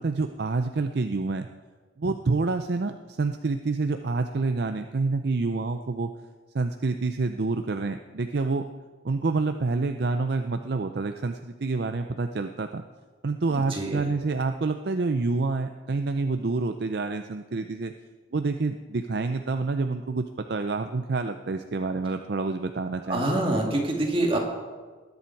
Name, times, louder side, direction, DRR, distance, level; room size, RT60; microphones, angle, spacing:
voice 1, 0.0-1.5 2.0-6.1 6.5-8.6 9.0-12.8 13.2-17.9 18.3-23.2, right 3 dB, 55° right, 7 dB, 0.5 m, -28 dB
voice 2, 13.5-14.0 23.1-24.4, right 1 dB, 25° right, 0 dB, 2.3 m, -26 dB
20.0 x 10.5 x 4.6 m, 1.4 s
head